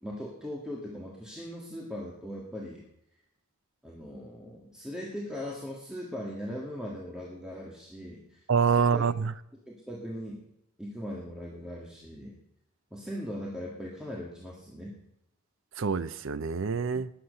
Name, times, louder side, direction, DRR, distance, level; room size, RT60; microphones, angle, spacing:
voice 1, 0.0-2.8 3.8-8.4 8.9-9.0 9.6-10.4 10.8-12.4 12.9-15.0, equal, 5° right, 1.7 m, -39 dB
voice 2, 8.5-9.3 15.8-17.1, right 6 dB, 65° right, 0.5 m, -26 dB
19.5 x 7.3 x 6.6 m
head